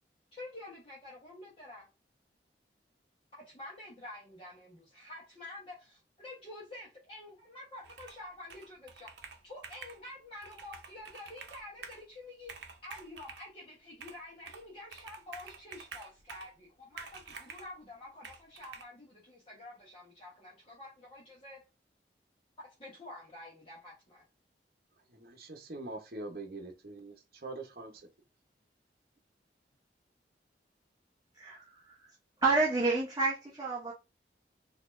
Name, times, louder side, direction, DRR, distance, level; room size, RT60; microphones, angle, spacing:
voice 1, 0.3-1.9 3.4-9.1 9.4-12.5 12.8-21.6 22.6-24.2, left 1 dB, 30° left, 1.2 m, -48 dB
Computer keyboard, 7.8-8.2 8.5-10.0 10.4-12.0 12.4-13.5 14.0-14.7 14.9-16.6 17.0-17.7 18.2-18.8, right 5 dB, 80° right, 0.7 m, -49 dB
voice 2, 25.0-28.1, right 2 dB, 55° right, 0.9 m, -44 dB
voice 3, 31.3-32.1 32.4-33.9, right 3 dB, 20° right, 0.8 m, -30 dB
4.2 x 2.9 x 2.6 m
head